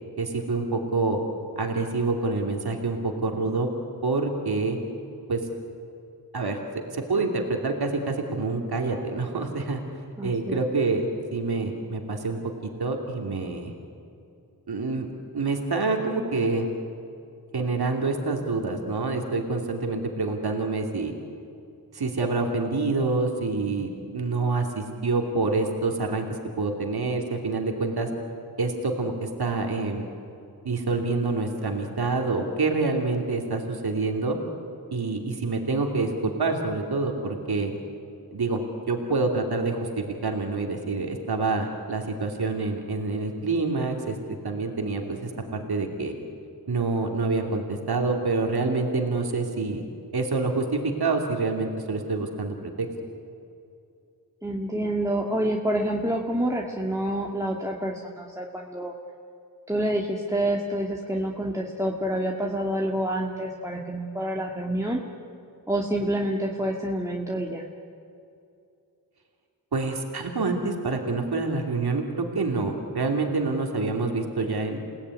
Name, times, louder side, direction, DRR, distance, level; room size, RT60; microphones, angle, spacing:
voice 1, 0.2-1.2 1.6-3.7 4.0-4.8 5.3-5.4 6.3-6.6 6.9-9.8 10.2-13.7 14.7-15.1 15.3-16.7 17.5-21.1 21.9-26.2 26.6-28.1 28.6-30.0 30.6-34.4 34.9-37.7 38.3-38.6 38.9-44.2 44.4-46.1 46.7-49.8 50.1-52.9 69.7-72.0 72.3-74.8, right 3 dB, 80° right, 2 dB, 2.8 m, -27 dB
voice 2, 10.2-10.6 54.4-58.9 59.7-65.0 65.7-67.6, right 1 dB, 10° right, -1 dB, 2.4 m, -27 dB
29.0 x 18.0 x 9.8 m, 2.6 s
wide cardioid pair, 60°, 37 cm